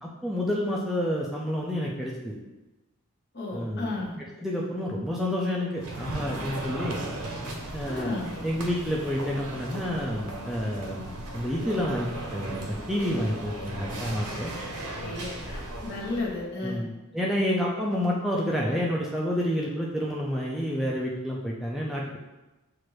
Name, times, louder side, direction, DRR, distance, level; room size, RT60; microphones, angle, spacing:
voice 1, 0.0-2.3 3.5-4.0 4.4-7.0 7.7-8.1 8.4-14.5 16.6-22.2, equal, ahead, -4 dB, 0.3 m, -29 dB
voice 2, 3.3-4.2 7.8-8.4 14.5-14.7 15.0-16.8, left 2 dB, 50° left, -3 dB, 1.0 m, -33 dB
sound 1, 5.8-16.4, right 1 dB, 90° right, 0.7 m, -36 dB
6.2 x 2.5 x 3.0 m, 1.1 s
head